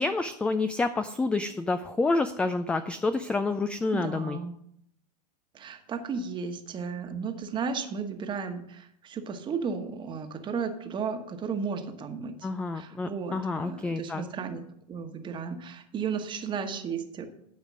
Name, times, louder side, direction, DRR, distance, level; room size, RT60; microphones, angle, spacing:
voice 1, 0.0-4.4 12.4-14.2, left 3 dB, 5° left, 10 dB, 0.3 m, -28 dB
voice 2, 3.9-4.5 5.5-12.5 12.7-14.6 14.9-17.3, right 5 dB, 20° right, 7 dB, 1.2 m, -34 dB
12.0 x 5.1 x 6.2 m, 0.72 s
hypercardioid pair, 110°, 21 cm